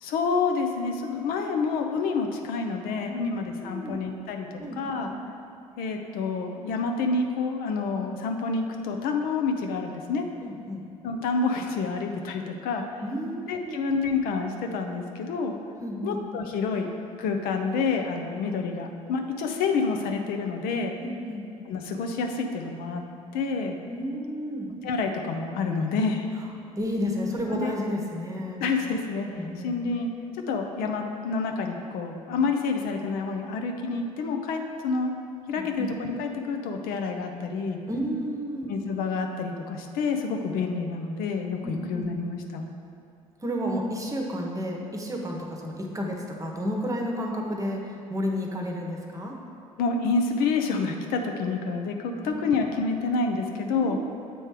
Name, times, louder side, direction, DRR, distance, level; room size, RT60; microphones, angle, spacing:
voice 1, 0.0-5.1 5.8-10.2 11.0-13.0 13.5-15.6 16.0-16.9 17.2-20.9 21.7-23.0 23.3-23.8 24.8-26.3 27.5-27.8 28.6-29.3 29.6-30.1 30.5-35.1 35.5-37.8 38.7-42.6 49.8-54.0, left 4 dB, 60° left, 4 dB, 0.5 m, -28 dB
voice 2, 3.6-3.9 4.6-5.1 10.4-10.8 13.0-13.8 15.8-16.2 21.0-21.4 23.9-24.7 26.8-28.6 29.3-29.7 35.6-35.9 37.9-38.7 41.6-42.1 43.4-49.4 52.2-52.5 53.7-54.0, equal, 20° right, 0 dB, 1.0 m, -31 dB
7.6 x 3.2 x 4.8 m, 2.5 s
figure-of-eight pair, 55°, 17 cm